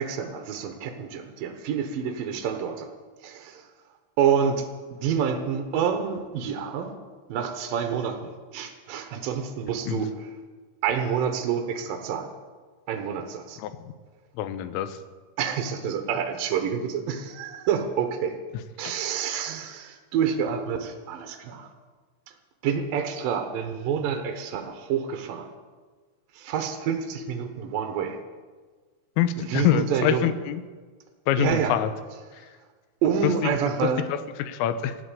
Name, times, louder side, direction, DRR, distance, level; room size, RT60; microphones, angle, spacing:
voice 1, 0.0-2.9 3.2-3.6 4.2-6.9 7.3-10.3 10.8-12.3 12.9-13.6 15.4-18.3 18.8-21.7 22.6-25.5 26.3-28.2 29.4-30.3 31.4-31.7 33.0-34.0, right 7 dB, 85° right, 6 dB, 2.0 m, -28 dB
voice 2, 13.6-13.9 14.4-15.0 18.8-19.0 29.2-30.6 31.3-31.9 32.3-32.5 33.2-33.5 33.8-35.0, left 10 dB, 85° left, 12 dB, 3.3 m, -26 dB
16.5 x 9.6 x 8.4 m, 1.4 s
omnidirectional pair, 5.8 m